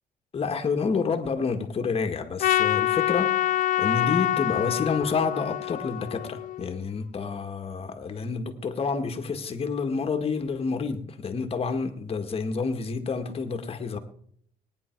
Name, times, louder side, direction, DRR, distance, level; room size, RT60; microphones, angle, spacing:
voice 1, 0.3-3.4 3.8-14.0, left 5 dB, 35° left, 1.8 m, -29 dB
Trumpet, 2.4-6.8, left 13 dB, 50° left, 0.4 m, -26 dB
19.5 x 9.9 x 4.6 m
cardioid pair, 110°, 17 cm